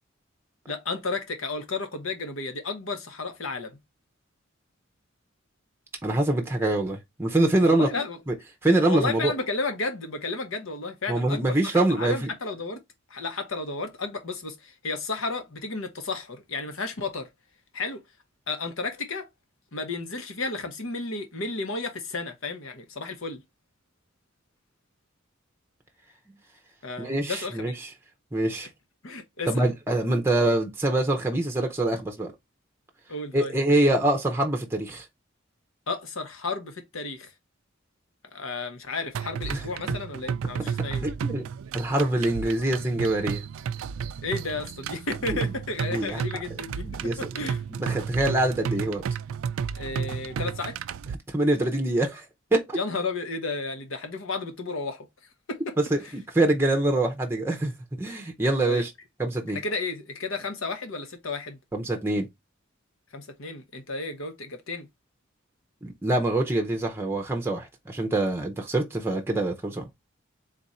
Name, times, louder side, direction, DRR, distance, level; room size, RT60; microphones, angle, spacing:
voice 1, 0.7-3.7 7.6-8.2 8.8-12.8 13.1-17.3 17.7-18.0 18.5-19.3 19.7-23.4 26.8-27.8 29.0-29.7 33.1-33.5 35.9-37.3 38.3-41.0 44.2-46.8 47.2-47.6 49.8-50.7 52.7-55.1 55.5-55.7 58.6-58.8 59.5-61.6 63.1-64.9, left 3 dB, 80° left, 1.0 m, -32 dB
voice 2, 6.0-7.9 8.3-8.4 8.6-9.3 11.1-12.3 27.0-27.7 28.3-28.7 29.5-32.3 33.3-35.0 39.5-39.6 41.0-41.5 41.7-43.4 45.3-45.4 45.9-46.2 46.8-47.2 47.8-49.0 50.4-50.5 51.3-52.2 52.5-52.8 55.8-58.9 59.2-59.6 61.7-62.3 65.8-69.9, right 2 dB, 10° right, 0.6 m, -25 dB
sound 1, 39.1-51.1, right 6 dB, 80° right, 0.3 m, -32 dB
3.8 x 2.5 x 4.2 m
head